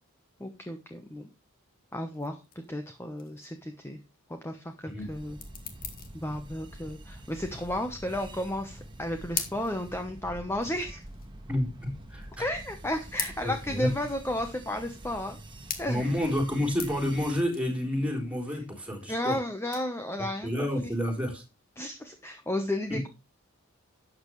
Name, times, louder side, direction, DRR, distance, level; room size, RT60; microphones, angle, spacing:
voice 1, 0.4-1.3 1.9-2.4 2.7-4.0 4.3-5.4 6.1-11.0 12.4-15.4 15.8-16.1 19.0-20.5 20.8-20.9 21.8-23.1, left 1 dB, 10° left, 6 dB, 1.0 m, -33 dB
sound 1, 2.1-21.9, left 7 dB, 40° left, 1.9 m, -43 dB
sound 2, 5.0-17.4, right 1 dB, 20° right, 1.6 m, -46 dB
voice 2, 11.5-12.4 13.4-13.9 15.9-19.4 20.4-21.4 22.9-23.0, left 1 dB, 5° right, 2 dB, 3.8 m, -29 dB
12.5 x 8.5 x 3.2 m, 0.28 s
head